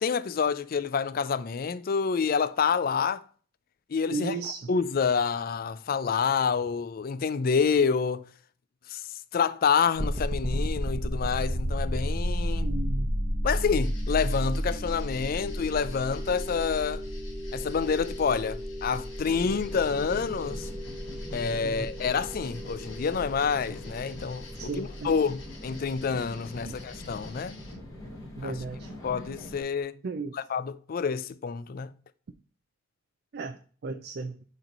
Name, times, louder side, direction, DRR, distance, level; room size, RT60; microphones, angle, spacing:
voice 1, 0.0-3.2 3.9-8.2 8.9-9.0 9.3-12.7 13.4-17.0 17.5-20.7 21.3-27.6 28.4-28.6 29.0-30.0 30.3-31.9, left 6 dB, 45° left, 0.4 m, -28 dB
voice 2, 4.1-4.7 12.6-13.1 21.6-21.9 24.6-25.1 26.6-26.8 28.4-28.9 30.0-30.4 33.3-34.4, right 3 dB, 50° right, 0.4 m, -35 dB
sound 1, 10.0-26.9, equal, 25° right, 1.0 m, -33 dB
sound 2, 13.8-27.7, left 4 dB, 70° left, 2.2 m, -52 dB
sound 3, 19.3-29.6, left 1 dB, 20° left, 1.5 m, -44 dB
6.3 x 3.1 x 5.1 m
head